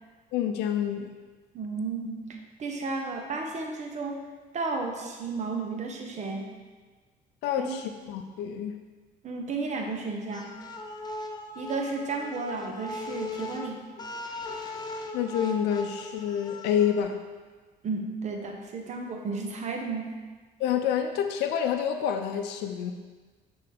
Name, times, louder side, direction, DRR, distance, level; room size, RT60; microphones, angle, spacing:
voice 1, 0.3-1.1 7.4-8.8 15.1-17.2 20.6-22.9, left 9 dB, 85° left, 6 dB, 0.5 m, -28 dB
voice 2, 1.5-2.2 2.6-4.2 4.5-6.5 7.6-7.8 9.2-10.5 11.5-13.8 17.8-20.1, right 3 dB, 45° right, 2 dB, 0.9 m, -33 dB
sound 1, 10.3-17.0, left 2 dB, 25° left, 0.6 m, -39 dB
7.5 x 3.8 x 3.6 m, 1.4 s
cardioid pair, 110°, 17 cm